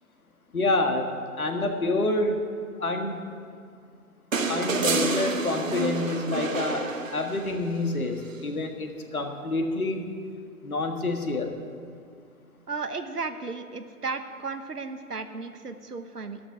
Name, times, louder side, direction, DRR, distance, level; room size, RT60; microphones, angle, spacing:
voice 1, 0.5-2.4 2.8-3.2 4.5-10.1 10.6-11.6, left 2 dB, 70° left, 5 dB, 1.7 m, -28 dB
sound 1, 4.3-7.7 9.2-9.3, right 4 dB, 60° right, 1.3 m, -28 dB
voice 2, 12.7-16.4, right 4 dB, 85° right, 8 dB, 1.0 m, -34 dB
12.0 x 6.9 x 9.6 m, 2.3 s
figure-of-eight pair, 135°, 45 cm